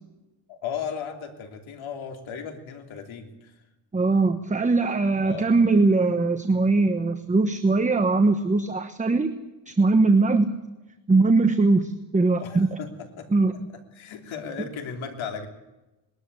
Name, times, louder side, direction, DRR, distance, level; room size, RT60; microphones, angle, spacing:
voice 1, 0.5-3.5 5.2-5.5 12.4-12.9 13.2-13.3 13.9-15.5, left 7 dB, 80° left, 4 dB, 3.3 m, -35 dB
voice 2, 3.9-9.3 9.7-10.5 11.1-12.8 13.3-13.7, right 3 dB, 15° right, 8 dB, 1.1 m, -21 dB
20.5 x 13.0 x 9.7 m, 1.0 s
cardioid pair, 115°, 47 cm